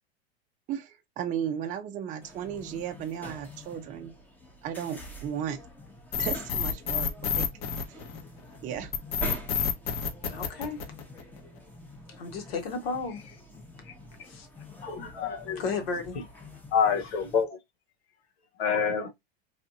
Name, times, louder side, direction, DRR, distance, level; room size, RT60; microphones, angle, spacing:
voice 1, 0.7-4.1 4.6-5.6 6.2-7.5 7.9-8.0 8.6-8.9 9.5-9.7, right 9 dB, 25° right, 0.5 m, -35 dB
sound 1, 2.2-17.4, equal, 5° left, 0.8 m, -46 dB
sound 2, 6.1-8.4 8.9-11.4, left 6 dB, 45° left, 0.8 m, -29 dB
voice 2, 10.3-10.8 12.2-13.4 13.8-13.9 14.3-14.5 15.6-16.2, left 4 dB, 70° left, 1.3 m, -33 dB
voice 3, 14.8-15.6 16.7-17.6 18.6-19.1, left 6 dB, 90° left, 0.9 m, -27 dB
3.3 x 2.5 x 2.6 m
hypercardioid pair, 115°, 30 cm